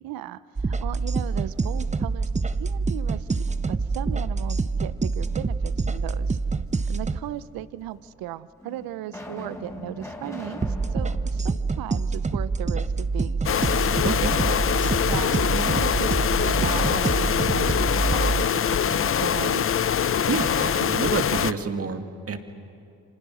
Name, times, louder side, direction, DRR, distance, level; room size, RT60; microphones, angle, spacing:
voice 1, 0.0-2.3 2.6-6.4 6.9-10.6 10.9-13.9 15.0-19.8, right 13 dB, 75° right, 16 dB, 0.7 m, -36 dB
sound 1, 0.6-7.2 10.6-18.5, right 4 dB, 20° right, 0.9 m, -26 dB
sound 2, 1.3-2.3 2.7-4.0 5.2-6.0 6.9-7.0 7.9-8.0 8.6-12.7 13.0-13.1 16.4-19.2, left 1 dB, 10° left, 4.4 m, -43 dB
sound 3, 13.4-21.5, left 8 dB, 40° left, 0.7 m, -23 dB
voice 2, 14.0-14.4 20.3-22.4, right 5 dB, 40° right, 6 dB, 2.3 m, -28 dB
29.5 x 25.5 x 6.4 m, 2.5 s
supercardioid pair, 65°, 35 cm